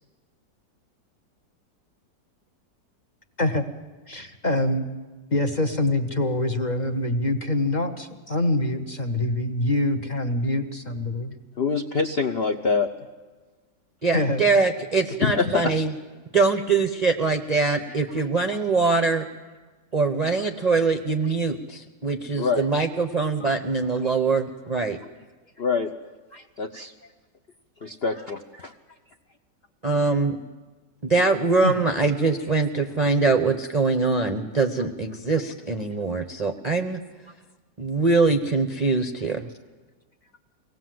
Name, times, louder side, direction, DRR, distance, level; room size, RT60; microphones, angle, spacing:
voice 1, 4.1-4.8 5.3-11.3 14.1-14.4 23.4-23.5 26.3-26.4 27.8-27.9 31.6-31.8, left 1 dB, 30° left, 6 dB, 1.0 m, -25 dB
voice 2, 11.6-12.9 15.2-15.7 22.3-22.7 25.6-25.9 26.6-26.9 27.8-28.7, left 5 dB, 50° left, 4 dB, 0.7 m, -25 dB
voice 3, 14.0-15.9 16.3-19.2 19.9-25.0 29.8-30.4 31.0-37.0 37.8-39.5, right 4 dB, 35° right, 6 dB, 0.6 m, -23 dB
24.0 x 18.0 x 7.7 m, 1.3 s
omnidirectional pair, 1.9 m